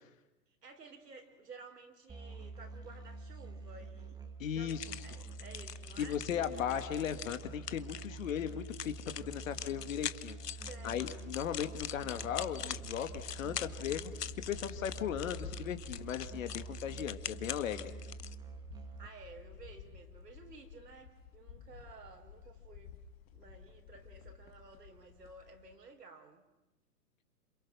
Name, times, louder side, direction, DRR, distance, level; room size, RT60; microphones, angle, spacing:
voice 1, 0.6-4.1 4.4-6.2 10.7-11.3 19.0-23.0 23.3-26.5, right 4 dB, 80° right, 4 dB, 4.1 m, -54 dB
Musical instrument, 2.1-19.1, right 3 dB, 10° right, 1.6 m, -47 dB
voice 2, 4.4-4.8 6.0-10.4 10.8-14.1 14.5-17.9, left 9 dB, 55° left, 9 dB, 2.2 m, -37 dB
sound 1, 4.7-18.4, left 9 dB, 80° left, 1.0 m, -44 dB
sound 2, 8.9-9.0 9.3-9.4 9.6-25.7, left 7 dB, 40° left, 2.1 m, -53 dB
27.5 x 27.5 x 6.2 m, 1.0 s
hypercardioid pair, 125°, 47 cm